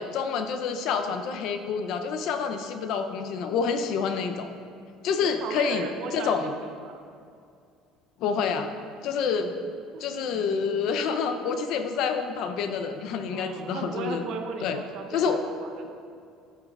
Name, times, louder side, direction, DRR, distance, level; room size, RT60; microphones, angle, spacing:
voice 1, 0.0-4.5 5.0-5.9 6.1-6.5 8.2-8.7 9.0-9.5 10.0-14.3 14.6-14.8 15.1-15.4, left 6 dB, 55° left, 8 dB, 0.5 m, -28 dB
voice 2, 5.2-7.0 9.9-10.0 13.3-16.1, right 5 dB, 50° right, 5 dB, 0.7 m, -37 dB
13.0 x 5.3 x 2.4 m, 2.4 s
cardioid pair, 155°, 0 cm